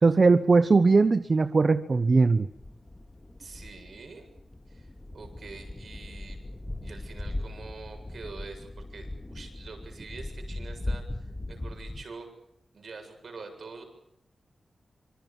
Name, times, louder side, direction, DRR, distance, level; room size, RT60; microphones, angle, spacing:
voice 1, 0.0-2.5, right 4 dB, 45° right, 11 dB, 1.1 m, -20 dB
sound 1, 2.5-12.0, left 1 dB, 20° left, 2.1 m, -39 dB
voice 2, 3.4-4.3 4.7-6.4 6.8-12.3 12.7-13.8, right 4 dB, 65° right, 5 dB, 7.5 m, -45 dB
26.5 x 25.0 x 7.3 m, 0.79 s
wide cardioid pair, 100°, 0 cm